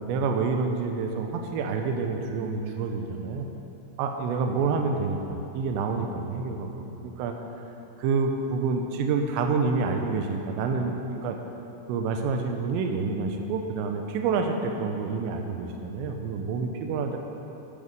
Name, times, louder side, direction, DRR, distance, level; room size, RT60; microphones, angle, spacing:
voice 1, 0.0-3.5 4.0-7.3 8.0-11.4 11.9-17.2, right 4 dB, 80° right, 4 dB, 2.8 m, -28 dB
10.5 x 7.1 x 5.2 m, 3.0 s
omnidirectional pair, 5.5 m